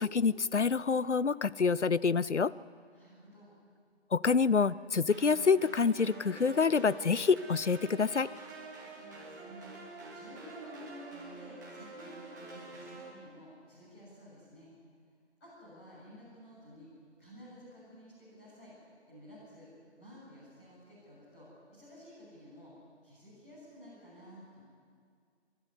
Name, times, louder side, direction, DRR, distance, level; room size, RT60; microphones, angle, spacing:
voice 1, 0.0-2.5 4.1-8.3, left 5 dB, 85° left, 18 dB, 0.7 m, -27 dB
voice 2, 2.9-3.5 8.9-9.7 10.1-14.7 15.4-16.9 17.2-18.8 19.1-19.7 20.0-22.7 23.0-24.6, equal, 10° left, -11 dB, 7.8 m, -52 dB
sound 1, 5.1-13.1, right 3 dB, 15° right, 2.1 m, -47 dB
23.5 x 12.0 x 9.9 m, 2.1 s
figure-of-eight pair, 160°, 34 cm